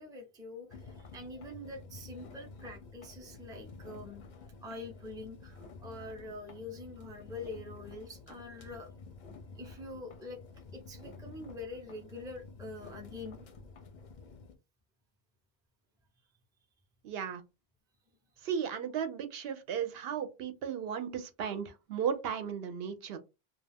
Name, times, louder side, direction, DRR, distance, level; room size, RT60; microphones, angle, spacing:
voice 1, 0.0-4.2 4.6-8.9 9.6-10.4 10.7-13.5, left 2 dB, 5° right, 0.5 m, -45 dB
sound 1, 0.7-14.6, left 4 dB, 55° left, 0.6 m, -51 dB
voice 2, 17.0-17.4 18.4-23.2, right 7 dB, 75° right, 0.8 m, -35 dB
2.3 x 2.3 x 3.3 m
omnidirectional pair, 1.0 m